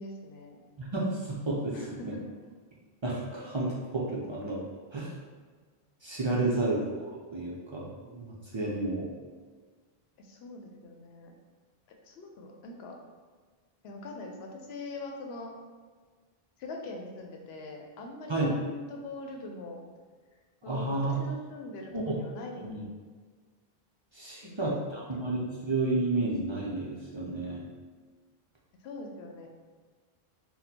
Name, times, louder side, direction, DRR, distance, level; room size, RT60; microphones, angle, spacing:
voice 1, 0.0-0.6 1.7-2.2 6.3-6.8 10.2-11.3 11.9-13.0 13.8-15.5 16.6-19.8 20.6-22.9 24.4-24.8 25.1-25.7 28.8-29.5, left 2 dB, 80° left, 2 dB, 0.8 m, -43 dB
voice 2, 0.8-2.0 3.0-4.6 4.9-5.1 6.0-9.1 18.3-18.5 20.7-21.2 21.9-22.1 22.6-22.8 24.1-27.6, right 2 dB, 40° right, -5 dB, 0.4 m, -31 dB
4.2 x 2.2 x 2.7 m, 1.5 s
omnidirectional pair, 1.0 m